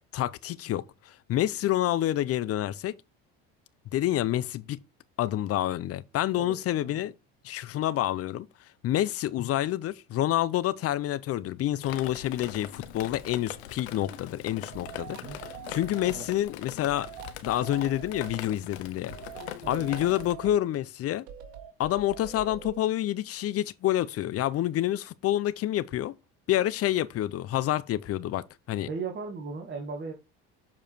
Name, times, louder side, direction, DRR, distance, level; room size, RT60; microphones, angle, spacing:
voice 1, 0.1-3.0 3.9-4.8 5.2-7.1 7.4-8.5 8.8-17.1 17.4-19.1 19.7-21.2 21.8-26.1 26.5-28.9, left 13 dB, 45° left, 0.7 m, -28 dB
voice 2, 6.3-7.0 15.1-15.4 16.1-16.3 19.6-19.9 28.9-30.1, right 4 dB, 35° right, 1.9 m, -37 dB
Drip, 11.8-20.3, left 12 dB, 90° left, 0.9 m, -42 dB
sound 1, 14.7-16.3 16.9-18.4 19.1-20.6 21.3-22.8, right 10 dB, 75° right, 1.6 m, -44 dB
7.3 x 4.9 x 4.5 m
supercardioid pair, 90°, 32 cm